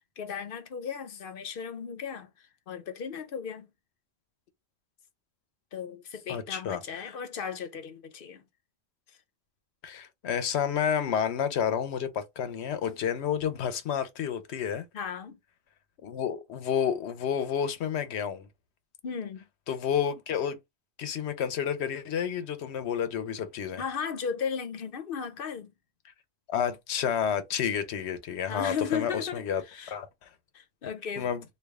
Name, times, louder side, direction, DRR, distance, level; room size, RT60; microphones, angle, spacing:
voice 1, 0.2-2.3 2.7-3.7 5.7-8.4 14.9-15.4 19.0-19.4 23.8-25.7 28.5-29.9 30.5-31.3, left 7 dB, 60° left, 0.8 m, -35 dB
voice 2, 6.3-7.1 9.8-14.8 16.0-18.5 19.7-20.6 21.0-23.8 26.5-29.6 29.9-30.1 31.2-31.4, left 8 dB, 85° left, 0.9 m, -30 dB
3.3 x 2.3 x 3.4 m
omnidirectional pair, 1.1 m